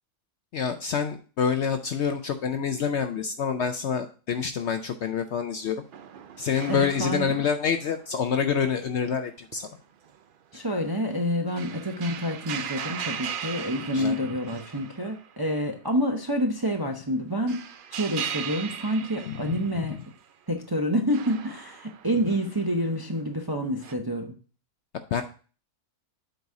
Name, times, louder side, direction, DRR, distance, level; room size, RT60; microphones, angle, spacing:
voice 1, 0.5-5.8 6.4-9.7 13.9-14.2 19.3-19.9 25.1-25.2, left 7 dB, 65° left, 8 dB, 0.7 m, -27 dB
sound 1, 5.9-9.1 9.5-9.6 10.0-10.2 10.5-15.5 15.8-15.9 17.1-20.1 21.1-22.9 23.8-23.9, right 8 dB, 75° right, 0.4 m, -38 dB
voice 2, 6.7-7.4 10.5-17.6 17.9-20.0 20.5-24.3, equal, 25° right, 3 dB, 0.5 m, -28 dB
7.9 x 4.1 x 4.7 m, 0.38 s
omnidirectional pair, 1.6 m